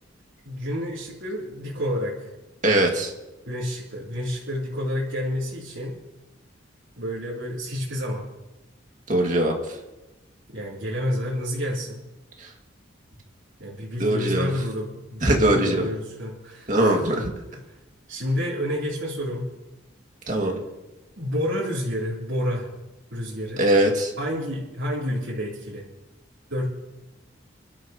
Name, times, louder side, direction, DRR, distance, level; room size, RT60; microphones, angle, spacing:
voice 1, 0.4-2.3 3.4-6.0 6.9-8.3 10.5-12.0 13.6-17.2 17.5-17.6 18.1-19.5 21.2-22.7 23.1-23.6 24.2-25.8 26.5-26.7, equal, 80° right, -8 dB, 3.2 m, -29 dB
voice 2, 2.6-3.1 9.1-9.5 12.4-12.5 14.0-14.5 15.2-15.9 16.7-17.3 20.3-20.6 23.6-24.1, right 1 dB, 40° right, 1 dB, 2.1 m, -21 dB
28.5 x 12.0 x 3.0 m, 1.0 s
head